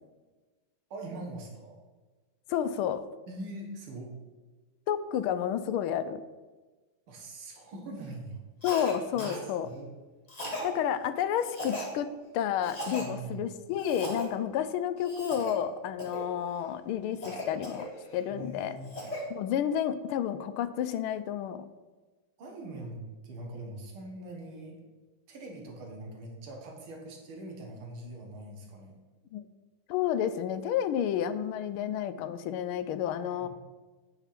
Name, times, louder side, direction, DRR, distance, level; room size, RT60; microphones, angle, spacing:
voice 1, 0.9-1.8 3.3-4.1 7.1-8.4 9.1-9.9 13.0-13.4 18.3-18.9 22.4-24.8 25.3-29.0 33.2-33.5, right 2 dB, 80° right, 0 dB, 2.4 m, -42 dB
voice 2, 2.5-3.1 4.9-6.2 8.6-9.7 10.6-18.8 19.3-21.7 29.3-29.4 29.9-33.5, left 9 dB, 85° left, 12 dB, 1.4 m, -31 dB
Cough, 8.6-8.9 9.2-9.4 10.3-10.7 11.4-11.9 12.6-13.1 13.8-14.3 15.0-15.5 16.0-16.3 17.2-18.2 18.6-19.2, equal, 20° left, 1.8 m, -38 dB
9.2 x 5.8 x 5.8 m, 1.3 s
omnidirectional pair, 2.3 m